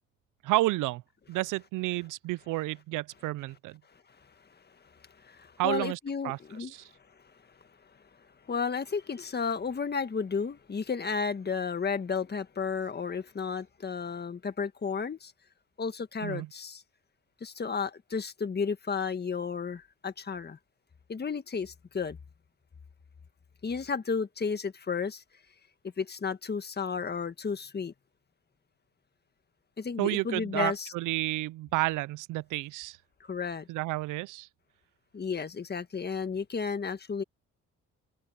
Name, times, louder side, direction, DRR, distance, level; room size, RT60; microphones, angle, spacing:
voice 1, 0.4-1.0 1.3-3.8 5.6-6.0 6.2-6.4 6.7-6.9 16.2-16.5 30.0-33.0 33.7-34.5, right 19 dB, 90° right, 0.5 m, -30 dB
voice 2, 4.9-6.7 8.4-15.3 15.8-16.8 17.4-20.6 21.1-22.2 23.6-25.2 26.0-27.9 29.8-30.9 33.2-33.7 35.1-37.2, left 5 dB, 35° left, 1.6 m, -33 dB
open air
cardioid pair, 90°, 30 cm